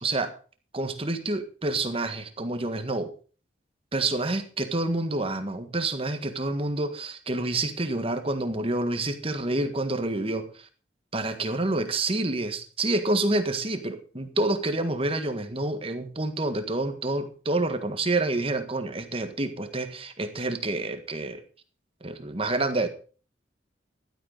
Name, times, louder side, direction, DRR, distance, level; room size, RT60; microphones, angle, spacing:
voice 1, 0.0-0.3 0.7-3.1 3.9-10.5 11.1-21.4 22.0-22.9, right 2 dB, 30° right, 9 dB, 1.7 m, -28 dB
15.0 x 12.0 x 4.0 m, 0.38 s
head